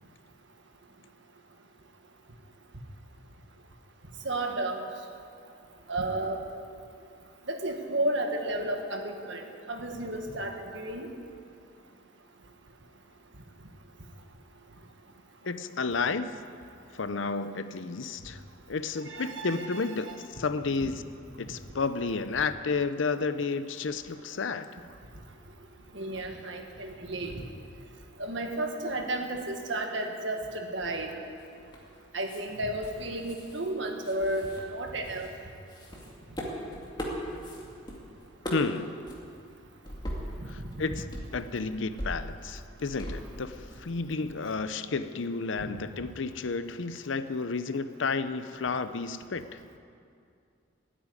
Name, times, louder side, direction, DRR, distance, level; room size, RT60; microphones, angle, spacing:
voice 1, 4.2-4.8 5.9-6.4 7.5-11.1 19.0-20.2 20.8-20.9 25.9-27.4 28.2-31.2 32.1-35.3 40.9-41.0 45.6-45.7, right 1 dB, 65° right, 4 dB, 1.6 m, -33 dB
voice 2, 15.4-16.4 16.9-18.4 18.7-21.0 21.4-24.7 38.5-39.0 40.5-49.4, left 4 dB, 70° left, 12 dB, 0.6 m, -31 dB
sound 1, 31.4-31.9 32.3-32.4 32.8-33.7 34.0-35.3 35.7-38.0 38.2-38.8 39.1-39.2 39.9-40.8 41.1-43.7, equal, 20° left, 2.2 m, -40 dB
15.0 x 8.7 x 9.7 m, 2.4 s
head